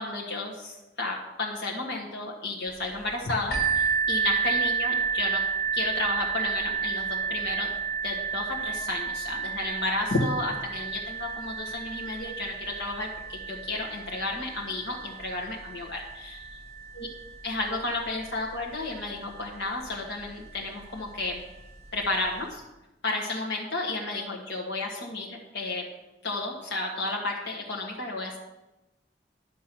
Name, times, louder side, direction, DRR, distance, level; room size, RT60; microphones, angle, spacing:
voice 1, 0.0-5.4 5.7-7.7 8.0-16.5 17.0-17.1 17.4-21.4 21.9-22.6 23.0-25.8 26.2-28.4, left 2 dB, 80° left, -1 dB, 1.4 m, -32 dB
sound 1, 3.5-19.1 19.8-19.9 20.5-20.6, right 6 dB, 60° left, 3.6 m, -31 dB
10.5 x 7.4 x 6.1 m, 1.0 s
head